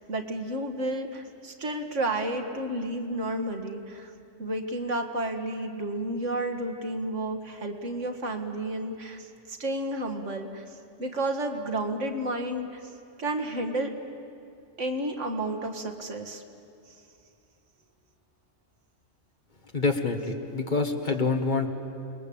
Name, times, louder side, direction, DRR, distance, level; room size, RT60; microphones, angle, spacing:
voice 1, 0.1-4.1 4.4-12.9 13.2-13.9 14.8-16.4, right 1 dB, 80° right, 4 dB, 2.2 m, -31 dB
voice 2, 19.7-21.7, left 3 dB, 40° left, 5 dB, 1.6 m, -26 dB
28.5 x 21.5 x 8.7 m, 2.6 s
omnidirectional pair, 1.2 m